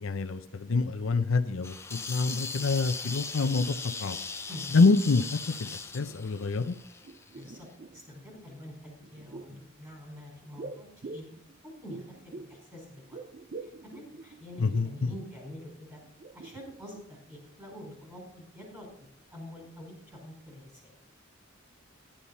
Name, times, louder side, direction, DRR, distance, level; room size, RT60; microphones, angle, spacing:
voice 1, 0.0-4.2 4.7-6.8 14.6-15.1, left 3 dB, 80° left, 10 dB, 0.6 m, -26 dB
sound 1, 1.6-7.4, left 4 dB, 15° left, 0.5 m, -39 dB
sound 2, 5.5-5.6 5.9-6.7 7.0-8.2 9.0-9.7 10.6-12.7 12.9-15.0 15.5-15.6 16.0-17.0 17.3-17.4, right 3 dB, 40° right, 0.4 m, -46 dB
voice 2, 7.3-11.3 11.6-13.2 13.6-16.0 16.3-18.9 19.3-20.9, equal, 10° right, -1 dB, 5.0 m, -46 dB
11.5 x 10.0 x 4.1 m, 0.70 s
head